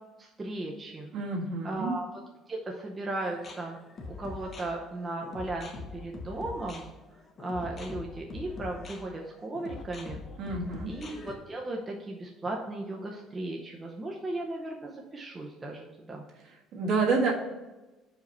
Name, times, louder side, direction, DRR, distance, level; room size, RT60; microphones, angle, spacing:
voice 1, 0.2-1.1 1.6-2.1 2.5-3.8 4.0-6.9 7.4-10.2 10.9-16.2, right 2 dB, 15° right, -1 dB, 0.7 m, -36 dB
voice 2, 1.1-2.0 10.4-10.9 16.7-17.3, right 4 dB, 55° right, 0 dB, 1.4 m, -28 dB
sound 1, 3.2-11.3, left 3 dB, 30° left, 0.8 m, -43 dB
4.9 x 4.6 x 5.4 m, 1.1 s
cardioid pair, 155°, 0 cm